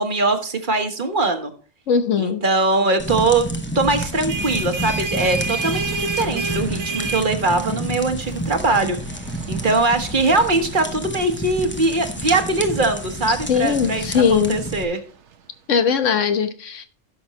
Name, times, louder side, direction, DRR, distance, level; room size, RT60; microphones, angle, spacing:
voice 1, 0.0-1.5 2.2-3.5 3.7-9.0 9.5-15.0, right 2 dB, 40° right, 7 dB, 1.3 m, -21 dB
voice 2, 1.9-2.4 13.5-14.6 15.7-16.8, left 6 dB, 70° left, 9 dB, 1.3 m, -20 dB
sound 1, 3.0-14.8, equal, 10° left, 0.7 m, -30 dB
sound 2, 4.0-15.3, right 4 dB, 65° right, 1.1 m, -32 dB
16.5 x 6.2 x 3.0 m, 0.38 s
omnidirectional pair, 1.3 m